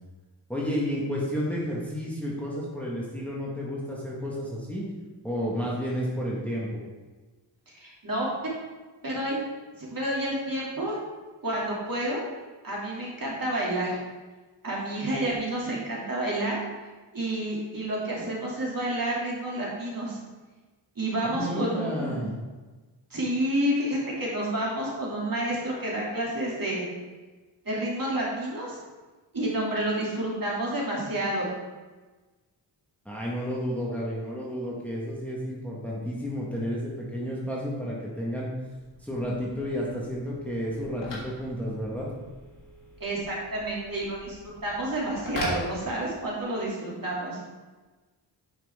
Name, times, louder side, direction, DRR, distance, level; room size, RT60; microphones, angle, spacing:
voice 1, 0.5-4.9 5.2-6.8 21.2-22.3 33.0-38.5 39.0-42.1, equal, 5° left, -5 dB, 1.6 m, -31 dB
voice 2, 7.8-8.3 9.0-9.4 9.8-11.0 11.4-12.2 12.6-14.0 14.6-16.6 17.1-20.2 21.0-22.2 23.1-26.9 27.6-28.8 29.3-31.5 43.0-47.4, right 1 dB, 45° right, -5 dB, 2.8 m, -29 dB
Telephone, 38.7-46.5, left 1 dB, 70° left, 2.8 m, -42 dB
9.6 x 5.9 x 3.6 m, 1.3 s
wide cardioid pair, 95°, 45 cm